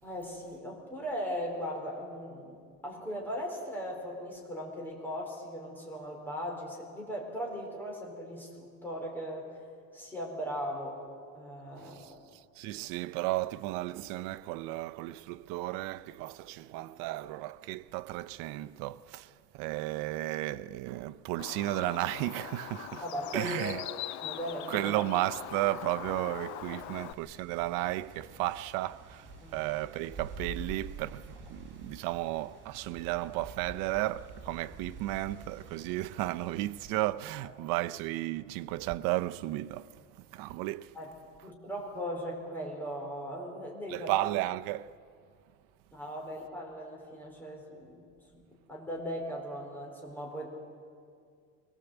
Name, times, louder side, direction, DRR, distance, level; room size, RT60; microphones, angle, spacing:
voice 1, 0.0-9.5 9.9-11.0 11.3-12.2 23.0-23.8 24.2-24.8 26.7-26.8 29.4-29.6 37.4-37.5 40.9-41.1 41.4-44.1 45.9-48.0 48.3-48.4 48.7-50.5, equal, 5° left, 4.5 m, -38 dB
voice 2, 11.8-23.0 23.3-23.8 24.7-41.0 43.9-44.9, right 16 dB, 85° right, 0.7 m, -34 dB
Bird, 21.4-27.1, left 13 dB, 60° left, 0.7 m, -42 dB
sound 1, 25.2-36.9, right 3 dB, 35° right, 5.0 m, -48 dB
24.0 x 18.5 x 8.1 m
cardioid pair, 165°, 32 cm